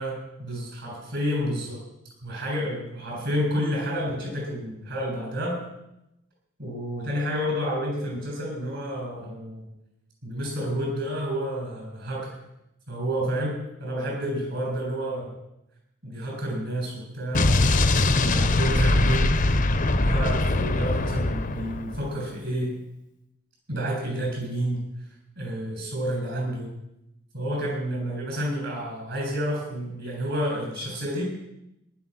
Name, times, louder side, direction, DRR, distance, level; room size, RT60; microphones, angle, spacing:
voice 1, 0.0-1.8 2.2-5.6 6.6-9.7 10.2-12.4 12.9-15.3 16.0-22.8 23.7-24.9 25.4-26.7 27.3-31.2, equal, 60° right, -1 dB, 7.4 m, -30 dB
Explosion, 17.3-22.1, left 2 dB, 40° left, 0.9 m, -22 dB
18.5 x 11.0 x 6.2 m, 0.87 s
head